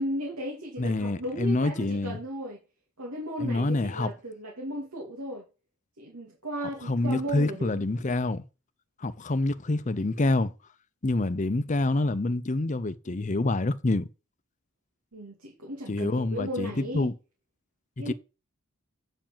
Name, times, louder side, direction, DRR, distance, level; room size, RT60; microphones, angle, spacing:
voice 1, 0.0-2.6 3.0-5.5 6.0-7.8 15.1-17.1 18.0-18.1, equal, 85° right, 2.6 m, -35 dB
voice 2, 0.8-2.2 3.4-4.1 6.9-8.4 9.0-10.5 11.0-14.1 15.9-17.1 18.1-18.2, left 2 dB, 35° left, 0.6 m, -27 dB
8.7 x 4.7 x 7.3 m
head